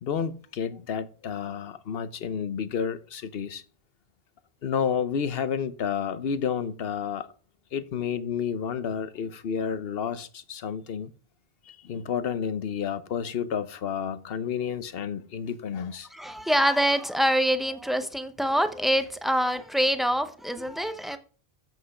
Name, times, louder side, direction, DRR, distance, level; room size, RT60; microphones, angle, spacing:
voice 1, 0.0-3.6 4.6-7.3 7.7-11.1 11.7-16.1, left 7 dB, 70° left, 1.0 m, -30 dB
voice 2, 16.1-21.2, equal, ahead, 0.6 m, -25 dB
8.0 x 6.2 x 4.8 m
omnidirectional pair, 1.0 m